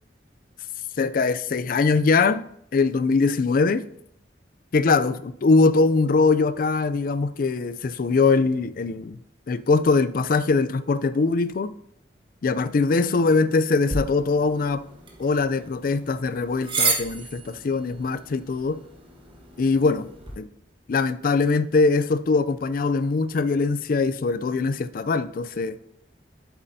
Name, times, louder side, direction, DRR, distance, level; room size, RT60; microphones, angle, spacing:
voice 1, 1.0-2.4 2.7-3.8 4.7-9.2 9.5-11.7 12.4-14.8 15.2-18.8 19.6-20.1 20.4-20.5 20.9-25.8, left 4 dB, 50° left, 14 dB, 0.4 m, -22 dB
sound 1, 13.9-20.4, right 4 dB, 30° right, 1.3 m, -32 dB
8.1 x 7.3 x 2.7 m, 0.70 s
head